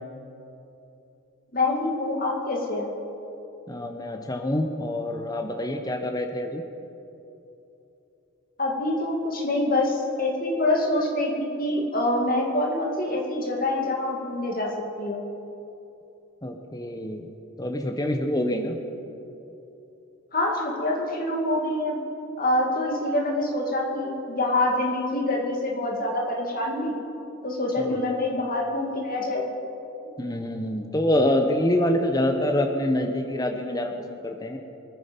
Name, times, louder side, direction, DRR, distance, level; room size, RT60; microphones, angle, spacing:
voice 1, 1.5-2.9 8.6-14.7 15.0-15.2 20.3-22.0 22.4-26.9 27.4-29.4, left 1 dB, 40° left, 0 dB, 2.4 m, -26 dB
voice 2, 3.7-6.6 16.4-17.3 17.6-18.8 27.8-28.0 30.2-34.6, left 1 dB, 15° left, 4 dB, 1.0 m, -26 dB
24.5 x 9.9 x 5.3 m, 2.9 s
head